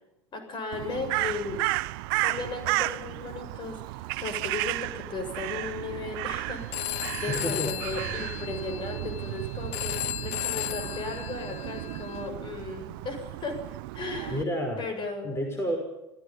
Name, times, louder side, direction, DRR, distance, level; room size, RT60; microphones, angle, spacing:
voice 1, 0.3-1.7 2.2-13.6 13.9-14.4 14.8-15.4, left 3 dB, 35° left, 7 dB, 7.1 m, -36 dB
Crow, 0.7-14.4, right 20 dB, 60° right, 0.7 m, -33 dB
Telephone, 6.7-12.3, left 14 dB, 50° left, 1.0 m, -35 dB
voice 2, 7.3-8.1 14.3-14.8 15.2-15.8, equal, 20° left, 4 dB, 5.6 m, -30 dB
29.0 x 16.5 x 5.7 m, 0.94 s
hypercardioid pair, 75°, 13 cm